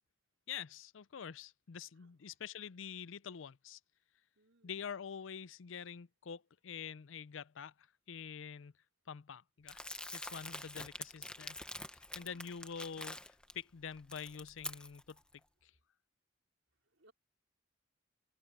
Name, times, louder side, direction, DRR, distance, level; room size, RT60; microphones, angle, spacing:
voice 1, 0.5-3.8 4.6-8.7 9.1-9.8 10.1-11.6 11.9-15.2 15.6-15.7, left 7 dB, 80° left, 0.5 m, -46 dB
voice 2, 4.4-4.7 12.1-12.6 16.9-17.1, right 2 dB, 75° right, 3.7 m, -67 dB
Crumpling crinkling, 9.7-13.5 13.9-15.2, left 1 dB, 5° left, 0.9 m, -46 dB
open air
head